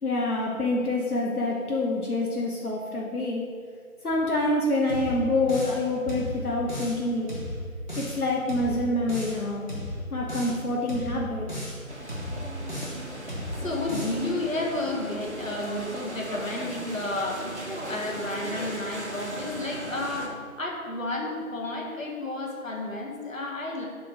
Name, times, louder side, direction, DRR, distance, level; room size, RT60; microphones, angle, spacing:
voice 1, 0.0-3.4 4.0-7.3 8.0-9.7 10.1-11.5, left 2 dB, 85° left, -2 dB, 1.1 m, -26 dB
sound 1, 4.9-5.8 6.1-7.0 7.3-8.2 8.5-9.4 9.7-10.6 10.9-11.8 12.1-13.0 13.3-14.2, left 1 dB, 30° left, 1.2 m, -35 dB
sound 2, 11.9-20.3, right 1 dB, 50° right, 1.0 m, -37 dB
voice 2, 13.3-17.6 17.9-23.9, left 2 dB, 65° left, -1 dB, 1.3 m, -32 dB
7.2 x 3.1 x 5.0 m, 2.2 s
figure-of-eight pair, 170°, 43 cm